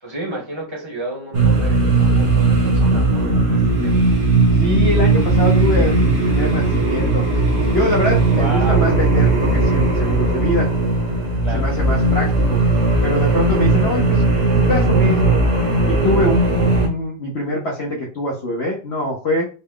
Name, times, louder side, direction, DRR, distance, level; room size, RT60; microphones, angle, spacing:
voice 1, 0.0-4.1 8.3-8.8 11.4-11.7, right 1 dB, 20° right, -2 dB, 0.9 m, -31 dB
sound 1, 1.3-16.9, right 2 dB, 45° right, 1.0 m, -17 dB
voice 2, 4.5-7.4 7.7-10.7 11.5-12.6 13.0-14.2 14.6-15.4 15.9-19.4, left 1 dB, 65° left, -1 dB, 0.6 m, -23 dB
4.0 x 2.2 x 3.7 m, 0.36 s
omnidirectional pair, 2.2 m